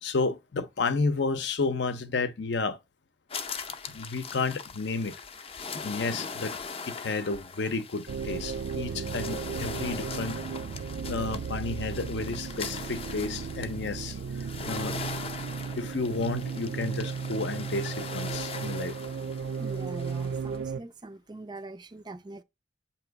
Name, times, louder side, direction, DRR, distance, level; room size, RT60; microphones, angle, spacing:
voice 1, 0.0-2.8 3.9-5.1 5.8-6.5 6.9-10.4 11.1-14.2 14.7-15.0 15.8-19.0, left 3 dB, 70° left, 0.6 m, -31 dB
sound 1, 3.3-20.6, left 5 dB, 30° left, 0.5 m, -41 dB
sound 2, 8.1-20.8, right 6 dB, 85° right, 0.4 m, -35 dB
voice 2, 19.6-22.4, right 2 dB, 25° right, 0.4 m, -42 dB
7.7 x 2.9 x 4.6 m
head